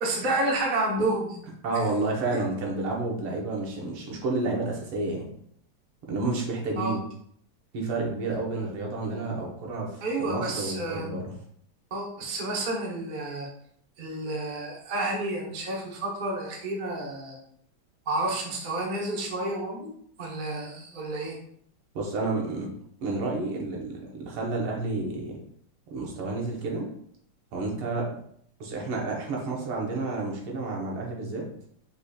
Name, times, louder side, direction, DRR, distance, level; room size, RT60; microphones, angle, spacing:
voice 1, 0.0-1.4 6.8-7.0 10.0-11.1 11.9-13.5 14.0-17.4 18.1-19.9 20.2-21.4, right 2 dB, 60° right, -1 dB, 0.5 m, -30 dB
voice 2, 1.6-5.3 6.1-7.0 7.7-11.4 22.0-22.7 23.0-25.4 25.9-26.9 27.5-28.1 28.6-31.5, right 3 dB, 80° right, -1 dB, 2.0 m, -30 dB
4.9 x 4.0 x 2.3 m, 0.66 s
omnidirectional pair, 2.4 m